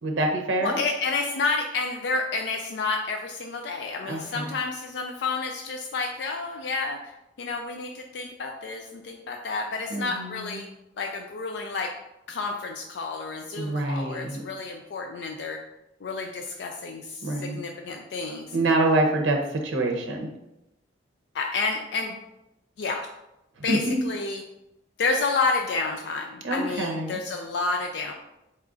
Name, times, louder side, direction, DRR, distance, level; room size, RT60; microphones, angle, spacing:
voice 1, 0.0-0.8 4.1-4.5 9.9-10.6 13.6-14.4 17.2-17.6 18.5-20.3 23.7-24.0 26.4-27.2, right 2 dB, 80° right, 2 dB, 0.6 m, -26 dB
voice 2, 0.6-10.7 11.0-11.9 12.3-15.6 16.0-18.6 21.3-22.2 22.8-23.1 23.6-24.4 25.0-28.1, left 3 dB, 60° left, 3 dB, 0.3 m, -30 dB
4.2 x 2.4 x 3.7 m, 0.89 s
head